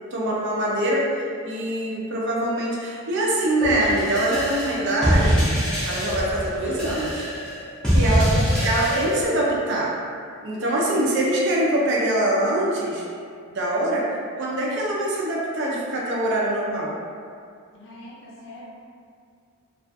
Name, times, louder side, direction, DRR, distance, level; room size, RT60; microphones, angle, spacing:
voice 1, 0.1-1.0 1.4-5.5 5.8-7.3 7.9-9.9 10.4-13.0 13.5-14.0 14.4-16.9, right 1 dB, 55° right, -4 dB, 0.4 m, -24 dB
sound 1, 3.6-9.3, equal, 5° left, 0.5 m, -23 dB
voice 2, 7.9-8.5 17.7-18.6, left 1 dB, 60° left, -6 dB, 0.6 m, -41 dB
2.3 x 2.3 x 2.5 m, 2.3 s
head